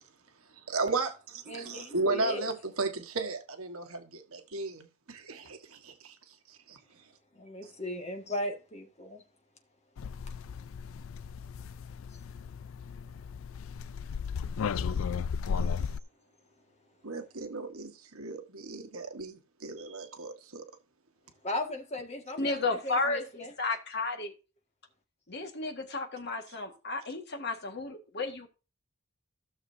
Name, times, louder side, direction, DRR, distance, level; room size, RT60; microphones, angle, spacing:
voice 1, 0.7-6.2 6.5-6.8 14.6-14.8 17.0-20.6, right 3 dB, 80° right, 1.3 m, -35 dB
voice 2, 1.5-2.5 7.4-9.2 21.4-22.6 22.8-23.5, left 1 dB, 30° left, 1.8 m, -37 dB
sound 1, 10.0-16.0, left 6 dB, 70° left, 0.4 m, -35 dB
voice 3, 22.4-24.3 25.3-28.5, left 3 dB, 50° left, 1.7 m, -33 dB
16.0 x 6.6 x 2.7 m
head